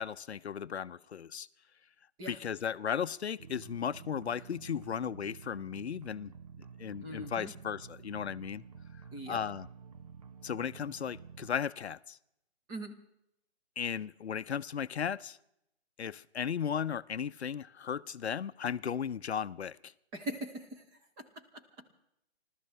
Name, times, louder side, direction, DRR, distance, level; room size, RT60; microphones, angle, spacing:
voice 1, 0.0-1.5 2.3-6.3 6.8-8.6 9.3-9.7 10.4-12.2 13.8-15.4 16.0-19.9, left 7 dB, 80° left, 0.6 m, -36 dB
sound 1, 3.4-11.5, right 6 dB, 35° right, 0.5 m, -51 dB
voice 2, 7.0-7.5 9.1-9.4 12.7-13.0 20.1-22.0, right 1 dB, 10° right, 1.0 m, -42 dB
29.5 x 13.0 x 3.3 m
figure-of-eight pair, 150°, 32 cm